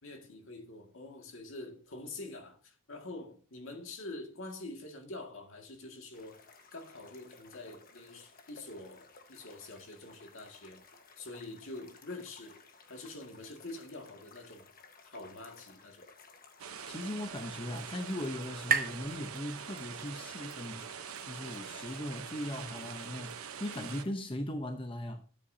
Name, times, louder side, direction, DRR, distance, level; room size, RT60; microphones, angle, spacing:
voice 1, 0.0-6.4 6.7-10.8 11.2-12.6 12.9-14.7 15.0-16.1, left 2 dB, 70° left, 2.0 m, -46 dB
sound 1, 6.1-24.1, left 4 dB, 40° left, 1.3 m, -58 dB
sound 2, 16.4-20.1, right 6 dB, 40° right, 1.0 m, -38 dB
sound 3, 16.6-24.0, right 7 dB, 85° right, 0.9 m, -44 dB
voice 2, 16.9-20.9 21.2-25.2, left 1 dB, 25° left, 0.8 m, -39 dB
12.5 x 8.3 x 2.7 m
head